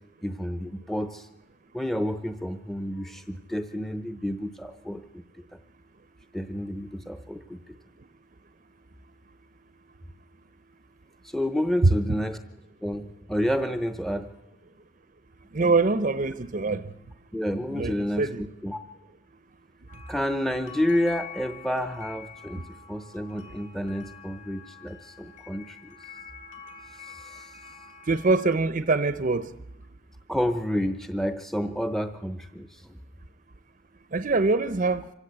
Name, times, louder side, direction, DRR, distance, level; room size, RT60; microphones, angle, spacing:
voice 1, 0.2-1.3 1.7-5.2 5.5-5.6 6.3-7.6 11.2-12.4 12.8-14.3 15.6-15.7 17.3-18.3 18.6-18.8 20.1-22.6 22.9-26.0 27.0-27.6 30.3-33.0, equal, ahead, 8 dB, 0.7 m, -30 dB
voice 2, 15.5-16.9 17.7-18.4 28.0-29.5 34.1-35.1, right 3 dB, 45° right, 12 dB, 0.7 m, -24 dB
sound 1, 19.9-28.5, left 6 dB, 40° left, 2.0 m, -46 dB
25.5 x 16.5 x 8.1 m, 0.96 s
head